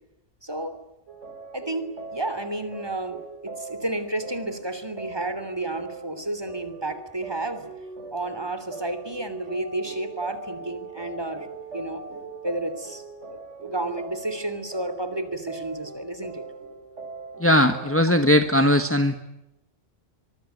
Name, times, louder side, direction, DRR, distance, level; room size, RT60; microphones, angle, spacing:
voice 1, 0.4-0.8 1.5-7.6 8.1-11.5 11.7-12.0 12.4-13.0 13.3-16.4 18.0-18.1, right 2 dB, 20° right, 11 dB, 3.2 m, -31 dB
sound 1, 1.1-18.3, right 4 dB, 90° right, 3.9 m, -41 dB
voice 2, 17.4-19.1, left 1 dB, 10° left, 8 dB, 1.4 m, -19 dB
24.5 x 24.0 x 9.3 m, 0.88 s
omnidirectional pair, 1.2 m